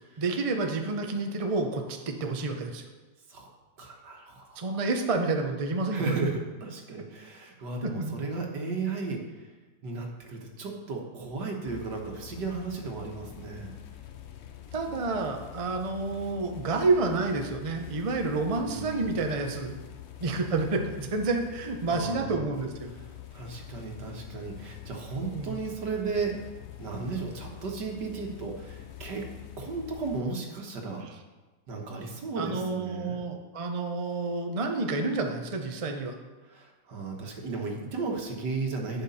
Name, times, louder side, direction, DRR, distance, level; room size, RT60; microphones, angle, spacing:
voice 1, 0.2-2.8 4.6-6.1 7.8-8.2 14.7-19.8 20.2-22.9 25.3-25.6 31.0-31.1 32.4-36.1, right 3 dB, 35° right, 3 dB, 0.6 m, -29 dB
voice 2, 3.8-4.8 5.9-9.2 9.8-13.7 18.6-19.2 21.9-22.5 23.3-26.4 26.8-29.3 29.6-31.0 31.7-33.2 36.4-39.0, right 4 dB, 75° right, 1 dB, 2.0 m, -34 dB
sound 1, 11.7-30.2, left 11 dB, 65° left, 0.6 m, -45 dB
10.5 x 7.3 x 4.2 m, 1.2 s
omnidirectional pair, 1.9 m